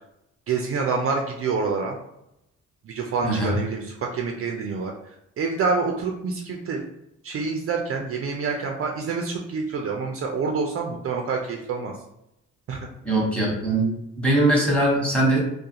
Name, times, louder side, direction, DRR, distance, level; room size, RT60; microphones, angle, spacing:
voice 1, 0.5-2.0 2.9-4.9 5.4-6.8 7.2-11.9 12.7-12.9, right 4 dB, 50° right, 1 dB, 0.4 m, -27 dB
voice 2, 3.2-3.6 13.0-13.9 14.2-15.4, right 1 dB, 5° left, -3 dB, 1.0 m, -21 dB
2.4 x 2.2 x 2.8 m, 0.82 s
cardioid pair, 90°, 30 cm